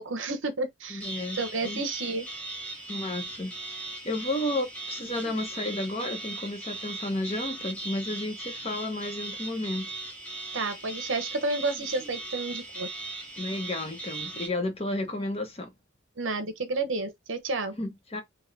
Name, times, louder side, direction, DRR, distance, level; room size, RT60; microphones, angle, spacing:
voice 1, 0.0-1.0 1.4-2.2 10.5-12.9 16.2-17.7, right 3 dB, 75° right, 1.0 m, -31 dB
voice 2, 0.9-1.4 1.6-1.8 2.9-9.9 13.4-15.7 17.7-18.2, left 1 dB, 30° left, 0.9 m, -32 dB
sound 1, 1.0-14.5, right 3 dB, 5° left, 1.0 m, -38 dB
4.0 x 2.3 x 4.1 m
head